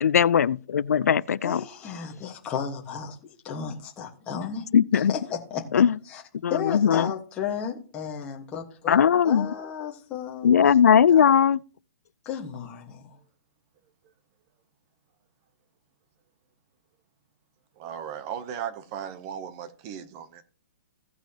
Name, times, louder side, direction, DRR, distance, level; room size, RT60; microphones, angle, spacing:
voice 1, 0.0-1.6 4.7-5.1 5.7-6.0 6.4-7.1 8.9-9.5 10.4-11.6, left 8 dB, 75° left, 0.4 m, -19 dB
voice 2, 1.4-3.1 3.4-4.7 4.9-5.8 6.1-6.2 6.5-9.0 9.2-10.8 11.1-11.2 12.2-13.2, left 7 dB, 15° left, 1.3 m, -34 dB
voice 3, 17.8-20.4, right 9 dB, 20° right, 0.7 m, -36 dB
16.5 x 6.0 x 2.8 m
hypercardioid pair, 170°, 8 cm